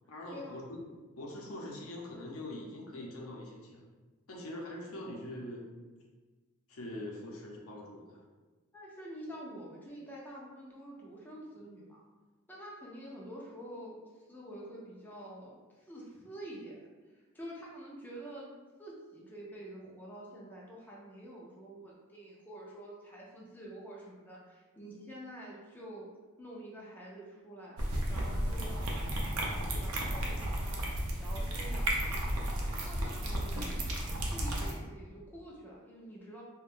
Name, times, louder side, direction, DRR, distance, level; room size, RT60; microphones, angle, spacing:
voice 1, 0.1-0.8 1.2-3.8 4.3-5.6 6.7-8.2, left 1 dB, 70° left, -2 dB, 0.6 m, -43 dB
voice 2, 8.7-12.1 12.5-16.8 17.1-18.5 18.8-26.1 26.4-29.0 29.7-32.3 32.8-33.9 34.2-36.4, right 1 dB, 10° left, -4 dB, 0.4 m, -47 dB
sound 1, 27.8-34.7, right 1 dB, 85° right, 0.5 m, -33 dB
2.4 x 2.2 x 3.5 m, 1.3 s
head